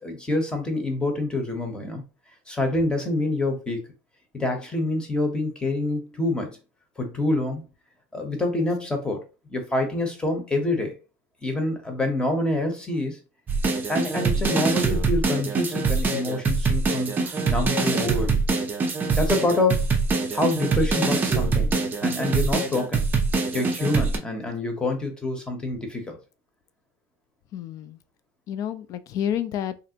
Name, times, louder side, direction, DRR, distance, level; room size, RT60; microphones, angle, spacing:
voice 1, 0.0-2.0 2.5-3.8 4.3-6.6 7.0-7.6 8.1-9.2 9.5-10.9 11.4-13.2 13.9-18.4 19.2-19.9 20.3-21.7 22.0-23.0 23.5-26.2, left 2 dB, 10° left, 0.8 m, -26 dB
sound 1, 13.5-24.2, right 4 dB, 20° right, 0.6 m, -24 dB
voice 2, 27.5-28.0 28.5-29.7, left 10 dB, 40° left, 0.3 m, -29 dB
3.2 x 2.5 x 2.8 m
supercardioid pair, 135°, 9 cm